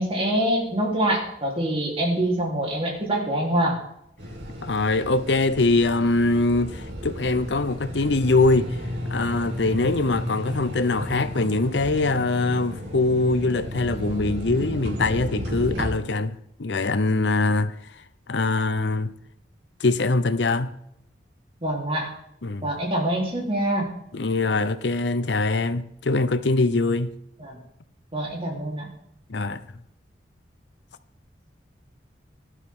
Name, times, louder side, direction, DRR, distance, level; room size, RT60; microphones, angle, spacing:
voice 1, 0.0-3.8 21.6-22.1 22.6-23.9 27.4-27.6 28.1-28.9, right 1 dB, 30° right, 3.7 m, -25 dB
sound 1, 4.2-15.9, left 1 dB, 80° right, 2.8 m, -33 dB
voice 2, 4.6-8.8 9.1-17.7 18.3-19.1 19.8-20.7 22.4-22.7 24.1-27.1 29.3-29.6, left 3 dB, 75° left, 0.7 m, -23 dB
17.0 x 12.5 x 3.8 m
head